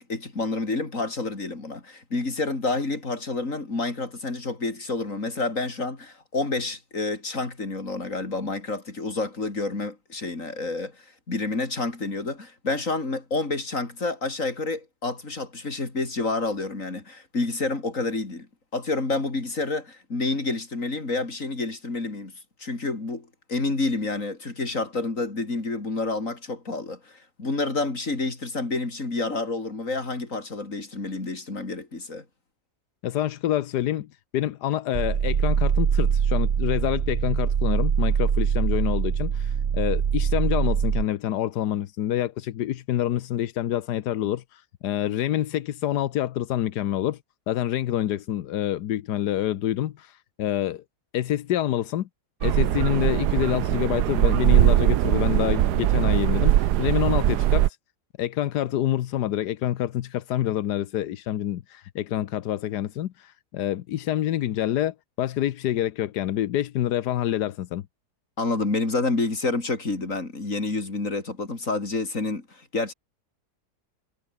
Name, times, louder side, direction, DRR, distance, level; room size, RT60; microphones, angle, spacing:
voice 1, 0.0-18.5 18.7-22.3 22.6-32.2 68.4-72.9, left 3 dB, 50° left, 4.4 m, -29 dB
voice 2, 33.0-34.1 34.3-47.2 47.5-50.8 51.1-52.1 52.4-57.8 58.2-67.8, left 12 dB, 85° left, 1.4 m, -27 dB
sound 1, 34.9-41.0, right 7 dB, 45° right, 1.2 m, -23 dB
sound 2, 52.4-57.7, right 14 dB, 80° right, 1.3 m, -21 dB
omnidirectional pair, 1.7 m